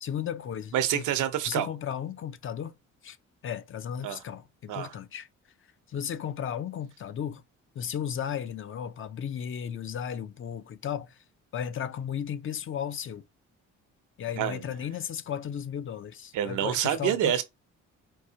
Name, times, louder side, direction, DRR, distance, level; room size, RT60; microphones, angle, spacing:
voice 1, 0.0-1.0 1.5-2.7 3.0-3.2 3.4-5.3 5.9-7.4 7.8-11.2 11.5-13.2 14.2-17.4, left 8 dB, 45° left, 0.5 m, -35 dB
voice 2, 0.7-1.7 4.0-4.2 4.7-4.9 14.4-14.6 16.3-17.4, right 10 dB, 80° right, 0.8 m, -27 dB
4.7 x 2.7 x 2.7 m
cardioid pair, 90°, 30 cm